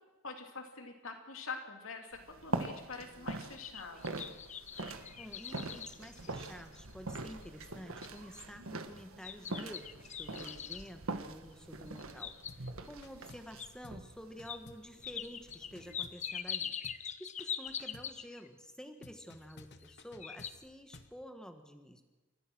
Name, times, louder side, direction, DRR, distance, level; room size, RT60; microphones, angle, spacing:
voice 1, 0.2-4.3, left 4 dB, 70° left, 4 dB, 2.9 m, -45 dB
sound 1, 2.1-16.1, right 2 dB, 75° right, 1.5 m, -44 dB
sound 2, 3.4-6.9 7.4-7.5 8.0-8.4 9.2-10.9 11.9-12.9 13.6-13.7 14.5-14.6 15.0-18.5 19.5-19.9 20.2-20.5, left 8 dB, 35° left, 0.7 m, -42 dB
voice 2, 5.2-16.7 17.2-22.0, equal, 5° left, 6 dB, 1.6 m, -50 dB
sound 3, 12.5-12.7 13.0-13.6 13.8-14.1 14.4-16.5 16.8-17.1 17.4-18.2 19.0-21.2, left 2 dB, 55° left, 1.1 m, -56 dB
28.5 x 14.5 x 6.2 m, 1.2 s
head